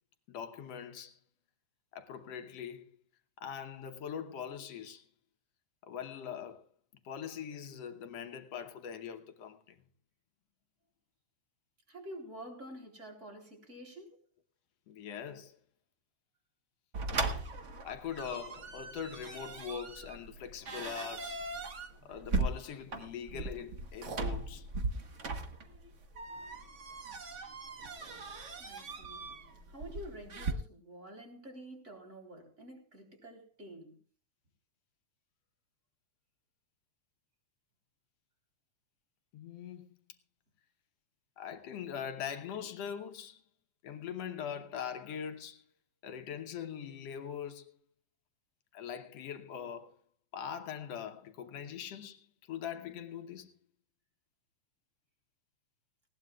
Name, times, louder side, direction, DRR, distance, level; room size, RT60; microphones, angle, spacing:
voice 1, 0.3-1.2 1.9-3.0 3.4-5.1 5.8-6.7 7.0-9.8 14.9-15.6 17.8-21.4 22.0-24.7 39.3-40.0 41.4-43.4 43.8-45.6 46.0-47.8 48.7-50.0 50.3-53.5, left 8 dB, 65° left, 2.0 m, -42 dB
voice 2, 11.9-14.2 28.6-29.3 29.7-34.0, right 1 dB, 25° right, 3.8 m, -48 dB
sound 1, 16.9-30.5, right 3 dB, 60° right, 0.7 m, -39 dB
19.5 x 18.0 x 2.4 m
omnidirectional pair, 3.3 m